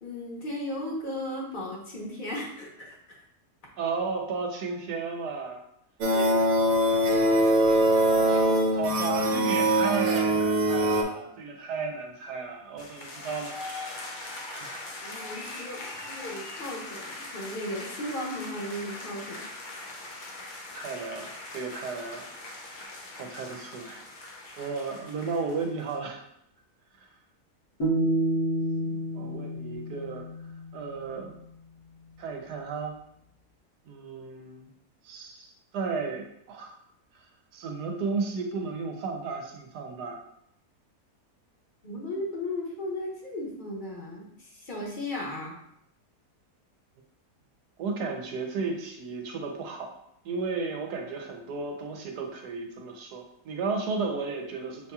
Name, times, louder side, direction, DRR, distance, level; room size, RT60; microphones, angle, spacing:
voice 1, 0.0-3.2 6.1-6.4 15.0-19.4 41.8-45.6, left 1 dB, 35° left, -3 dB, 1.0 m, -36 dB
voice 2, 3.8-5.6 8.1-14.8 20.7-24.0 24.6-26.2 27.0-27.1 28.8-30.3 30.7-31.3 32.2-32.9 33.9-34.7 35.0-36.7 37.5-40.2 47.8-49.9 50.2-54.9, right 4 dB, 85° right, 3 dB, 1.3 m, -34 dB
sound 1, 6.0-11.0, right 1 dB, 60° right, 0.7 m, -22 dB
sound 2, 12.8-26.0, left 2 dB, 65° left, 0.4 m, -41 dB
sound 3, 27.8-30.9, right 1 dB, 90° left, 1.7 m, -29 dB
6.7 x 2.8 x 2.3 m, 0.74 s
omnidirectional pair, 1.7 m